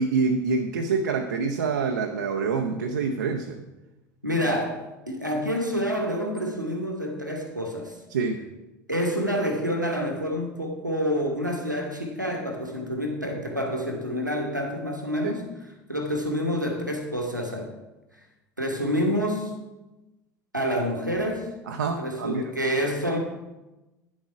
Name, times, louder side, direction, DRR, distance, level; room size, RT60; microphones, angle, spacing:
voice 1, 0.0-3.6 8.1-8.4 15.2-15.3 21.7-22.4, right 4 dB, 70° right, 4 dB, 0.6 m, -26 dB
voice 2, 4.2-8.0 8.9-15.5 15.9-17.7 18.6-19.5 20.5-21.5 22.0-23.2, equal, 90° right, 2 dB, 1.2 m, -28 dB
9.6 x 7.5 x 4.7 m, 1.0 s
figure-of-eight pair, 70°, 10 cm